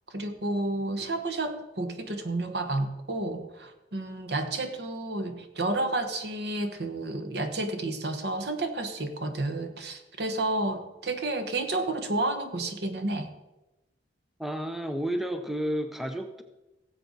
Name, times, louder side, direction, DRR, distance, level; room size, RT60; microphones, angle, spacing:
voice 1, 0.1-13.3, right 2 dB, 65° right, 8 dB, 1.2 m, -31 dB
voice 2, 14.4-16.4, equal, ahead, 7 dB, 0.6 m, -31 dB
17.5 x 7.8 x 4.0 m, 1.0 s
head